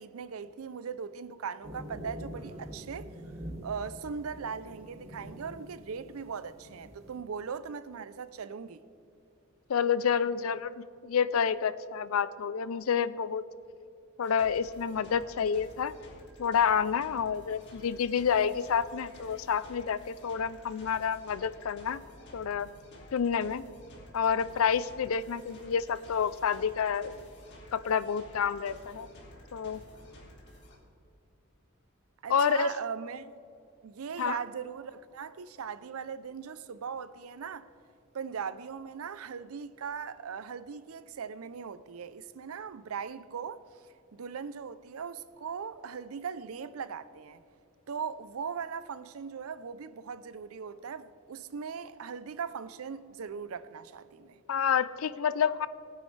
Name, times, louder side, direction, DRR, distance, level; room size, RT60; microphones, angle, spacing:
voice 1, 0.0-3.1 3.6-8.8 32.2-33.3 33.8-37.7 38.1-43.6 44.1-47.4 47.9-54.4, right 6 dB, 85° right, 0.5 m, -39 dB
sound 1, 1.6-7.2, equal, 30° right, 2.3 m, -45 dB
voice 2, 9.7-10.7 11.0-13.4 14.2-15.9 16.4-22.0 22.3-22.7 23.1-23.6 24.1-27.1 27.7-29.1 29.5-29.8 32.3-32.7 34.2-34.4 54.5-55.7, left 7 dB, 75° left, 0.4 m, -28 dB
sound 2, 14.2-30.8, left 1 dB, 55° left, 2.5 m, -52 dB
19.0 x 9.4 x 3.3 m
head